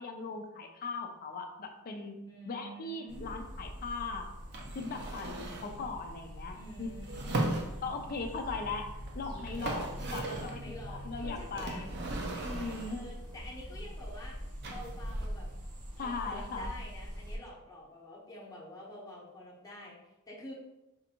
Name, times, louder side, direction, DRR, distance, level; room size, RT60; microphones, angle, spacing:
voice 1, 0.0-2.2 2.5-4.3 4.7-6.9 7.8-8.9 9.1-11.9 12.4-13.1 16.0-16.7, left 4 dB, 40° left, 4 dB, 0.4 m, -39 dB
voice 2, 2.3-3.3 6.5-7.5 10.3-11.9 12.9-14.4 14.7-15.5 15.9-20.0 20.3-20.5, left 1 dB, 15° left, -5 dB, 0.8 m, -48 dB
sound 1, 3.1-17.4, equal, 85° right, 0.9 m, -43 dB
sound 2, 4.5-5.8 7.0-8.1 9.1-9.2 9.4-10.6 11.6-13.1 14.6-15.3, right 2 dB, 50° right, 0.6 m, -37 dB
4.3 x 2.5 x 2.8 m, 0.98 s
head